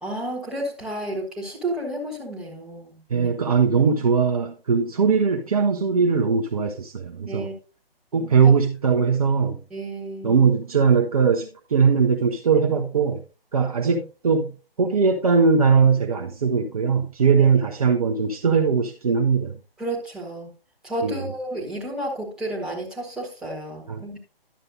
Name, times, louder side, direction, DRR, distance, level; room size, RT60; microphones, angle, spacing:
voice 1, 0.0-3.0 7.3-7.5 9.7-10.4 17.4-17.5 19.8-20.5 20.8-24.2, right 1 dB, ahead, 1.4 m, -31 dB
voice 2, 3.1-7.5 8.1-9.6 10.2-13.2 13.5-14.5 14.8-19.5 21.0-21.3 23.9-24.2, right 5 dB, 40° right, 0.7 m, -20 dB
11.0 x 7.6 x 2.6 m
figure-of-eight pair, 140°, 30 cm